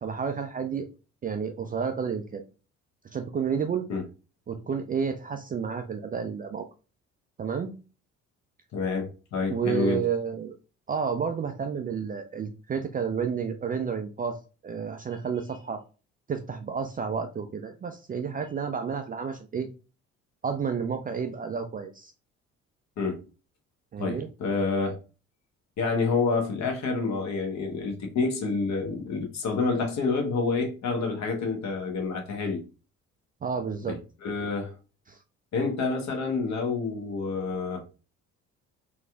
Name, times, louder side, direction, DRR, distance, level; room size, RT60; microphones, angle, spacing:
voice 1, 0.0-0.9 1.2-2.4 3.1-3.9 4.5-6.7 7.4-7.7 9.5-10.6 10.9-14.4 14.6-15.8 16.3-19.7 20.4-22.1 23.9-24.3 33.4-34.0 35.1-35.2, right 6 dB, 25° right, 0.4 m, -30 dB
voice 2, 8.7-10.0 23.0-23.2 24.0-25.0 25.8-32.6 33.9-34.0 34.2-34.8 35.5-37.8, left 4 dB, 45° left, 1.1 m, -28 dB
4.1 x 2.4 x 2.2 m
figure-of-eight pair, 50°, 38 cm